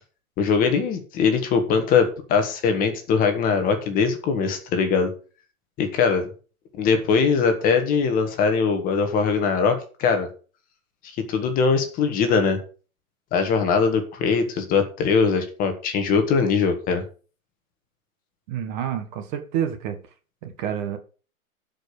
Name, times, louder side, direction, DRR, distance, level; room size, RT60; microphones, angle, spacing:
voice 1, 0.4-5.1 5.8-6.3 6.8-10.3 11.0-12.6 13.3-17.0, left 5 dB, 20° left, 6 dB, 1.6 m, -21 dB
voice 2, 18.5-20.0 20.4-21.0, right 9 dB, 35° right, 7 dB, 1.5 m, -28 dB
11.5 x 5.3 x 6.6 m, 0.37 s
hypercardioid pair, 155°, 43 cm